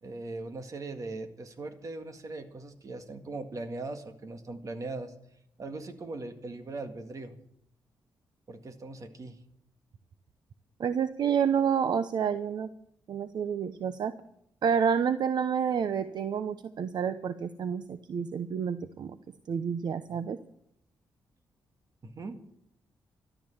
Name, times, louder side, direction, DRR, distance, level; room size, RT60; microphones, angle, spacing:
voice 1, 0.0-5.1 5.6-7.4 8.5-9.4 22.0-22.4, right 3 dB, 45° right, 7 dB, 1.9 m, -39 dB
voice 2, 10.8-12.7 13.1-14.1 14.6-19.2 19.5-20.4, right 7 dB, 60° right, 12 dB, 0.7 m, -29 dB
13.5 x 12.0 x 7.2 m, 0.74 s
cardioid pair, 105°, 8 cm